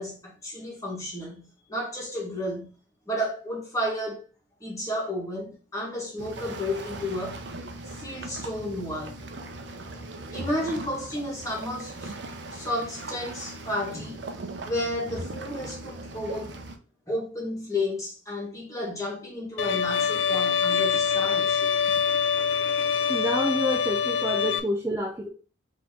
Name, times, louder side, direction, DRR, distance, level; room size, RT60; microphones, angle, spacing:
voice 1, 0.0-2.7 3.1-4.2 4.6-7.4 7.9-9.3 9.8-10.0 10.3-12.1 12.5-14.2 14.6-16.5 17.1-21.8 22.7-22.8, left 1 dB, 15° left, 1.6 m, -32 dB
sound 1, 6.2-16.8, right 2 dB, 60° right, 0.6 m, -39 dB
Bowed string instrument, 19.6-24.6, left 7 dB, 75° left, 0.4 m, -25 dB
voice 2, 23.1-25.3, equal, 15° right, 0.4 m, -28 dB
4.0 x 2.9 x 3.7 m
head